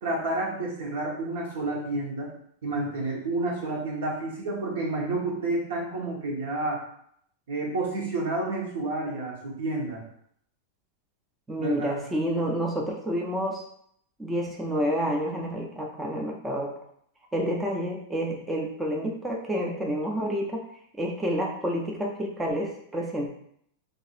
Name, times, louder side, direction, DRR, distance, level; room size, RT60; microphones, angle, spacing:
voice 1, 0.0-2.3 2.6-6.8 7.5-10.0 11.6-11.9, right 2 dB, 75° right, -1 dB, 1.1 m, -30 dB
voice 2, 11.5-13.6 14.2-16.7 17.3-20.6 21.0-23.3, equal, 10° right, -1 dB, 0.4 m, -29 dB
2.6 x 2.5 x 4.2 m, 0.68 s
supercardioid pair, 150°, 0 cm